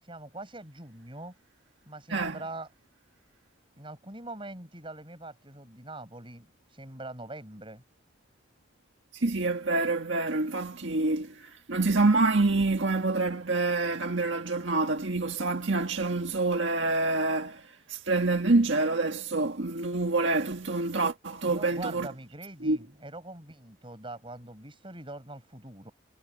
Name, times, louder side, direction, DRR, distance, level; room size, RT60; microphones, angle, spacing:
voice 1, 0.0-1.4 1.9-2.7 3.8-7.8 21.4-25.9, right 2 dB, 25° right, 7.1 m, -43 dB
voice 2, 2.1-2.4 9.1-22.1 22.6-22.8, right 3 dB, 75° right, 1.7 m, -27 dB
head